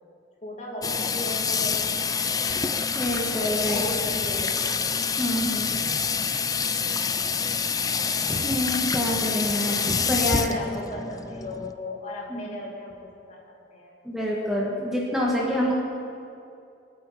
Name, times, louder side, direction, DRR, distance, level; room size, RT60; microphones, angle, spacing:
voice 1, 0.4-1.9 3.6-4.8 7.1-7.7 8.9-9.9 10.3-13.4 13.7-14.0, left 1 dB, 40° left, -3 dB, 2.4 m, -38 dB
Water tap faucet / Sink (filling or washing), 0.8-11.7, left 6 dB, 20° left, 0.4 m, -27 dB
voice 2, 2.9-3.9 5.2-5.9 8.3-10.6 12.3-12.5 14.0-15.7, equal, ahead, -4 dB, 1.5 m, -27 dB
21.0 x 8.6 x 4.9 m, 2.6 s
head